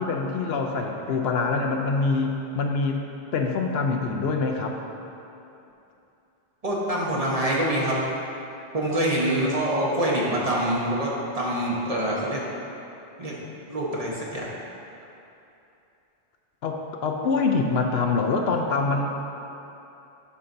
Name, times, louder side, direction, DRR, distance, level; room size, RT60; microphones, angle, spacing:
voice 1, 0.0-3.0 3.3-4.8 16.6-19.1, left 4 dB, 70° left, 2 dB, 0.8 m, -25 dB
voice 2, 6.6-8.0 8.7-12.4 13.2-13.3 13.7-14.5, right 1 dB, 35° right, -5 dB, 1.0 m, -25 dB
10.5 x 5.6 x 2.6 m, 2.8 s
omnidirectional pair, 1.1 m